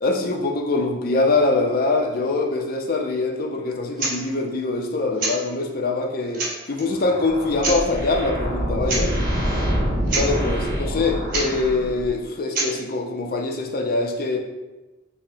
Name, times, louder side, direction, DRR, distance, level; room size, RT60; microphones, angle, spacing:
voice 1, 0.0-9.1 10.1-14.4, left 3 dB, 45° left, 2 dB, 0.4 m, -23 dB
sound 1, 4.0-4.2 5.2-5.4 6.0-6.1 6.3-6.8 7.6-7.8 8.8-9.1 9.3-9.4 9.8-9.9 10.1-10.3 11.3-11.5 12.5-12.7, right 2 dB, 45° right, 0.9 m, -26 dB
sound 2, 6.9-12.3, equal, 20° right, 0.9 m, -26 dB
5.9 x 2.1 x 2.7 m, 1.1 s
head